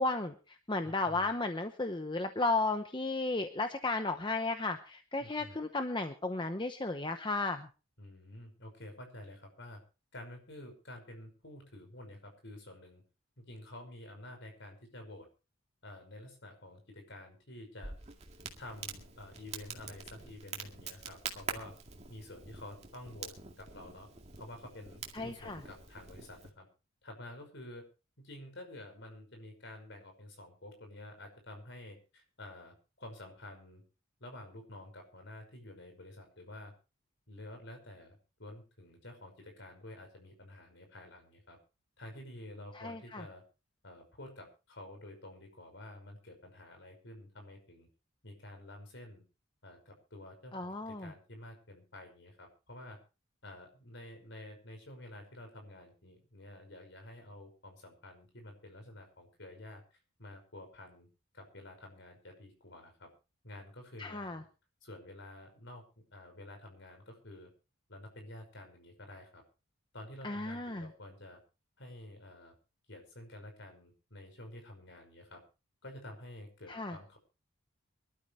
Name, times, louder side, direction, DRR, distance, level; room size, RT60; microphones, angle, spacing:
voice 1, 0.0-7.7 25.1-25.6 42.8-43.2 50.5-51.1 64.0-64.4 70.2-70.9 76.7-77.0, left 3 dB, 20° left, 7 dB, 0.8 m, -34 dB
voice 2, 0.8-1.3 5.2-5.6 8.0-9.8 10.1-13.0 13.4-15.3 15.8-17.9 18.6-21.7 22.1-24.1 24.4-26.7 27.0-27.8 28.2-33.8 34.2-36.7 37.3-41.6 42.0-43.4 43.8-47.9 48.2-49.2 49.6-53.0 53.4-61.1 61.3-63.1 63.4-64.4 64.8-65.8 66.1-67.5 67.9-69.4 69.9-71.4 71.8-72.5 72.9-75.4 75.8-77.2, left 1 dB, 55° left, 5 dB, 5.5 m, -50 dB
Crackle, 17.8-26.5, right 5 dB, 30° right, 2.1 m, -46 dB
24.0 x 12.5 x 3.2 m, 0.32 s
head